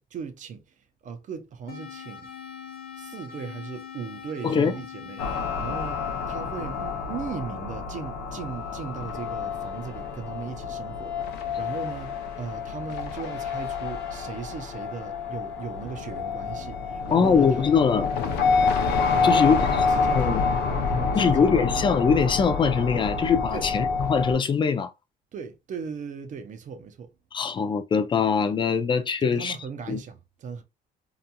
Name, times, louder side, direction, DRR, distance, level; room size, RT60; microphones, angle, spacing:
voice 1, 0.0-2.3 3.0-5.3 5.6-17.5 19.1-21.5 23.5-23.7 25.3-27.1 29.2-30.6, right 6 dB, 50° right, 0.7 m, -38 dB
sound 1, 1.7-6.7, left 8 dB, 65° left, 0.9 m, -43 dB
sound 2, 5.2-24.3, left 4 dB, 80° left, 0.6 m, -28 dB
voice 2, 17.1-18.1 19.2-19.5 20.1-20.4 21.1-24.9 27.3-29.6 29.9-30.0, left 6 dB, 30° left, 0.4 m, -22 dB
2.9 x 2.5 x 2.2 m
cardioid pair, 110°, 17 cm